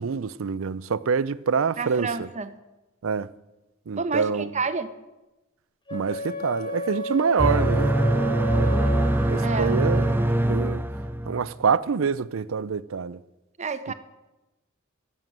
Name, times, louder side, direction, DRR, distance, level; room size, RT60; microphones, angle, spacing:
voice 1, 0.0-2.3 3.0-3.3 3.9-4.4 5.9-10.2 10.5-10.8 11.3-13.2, right 5 dB, 70° right, 0.5 m, -26 dB
voice 2, 1.8-2.5 4.0-4.9 9.4-9.7 13.6-13.9, right 4 dB, 35° right, 0.9 m, -29 dB
Wind instrument woodwind instrument, 5.9-10.4, right 2 dB, 25° left, 1.2 m, -33 dB
sound 1, 7.4-11.5, right 1 dB, 10° right, 0.5 m, -23 dB
11.0 x 7.7 x 9.0 m
head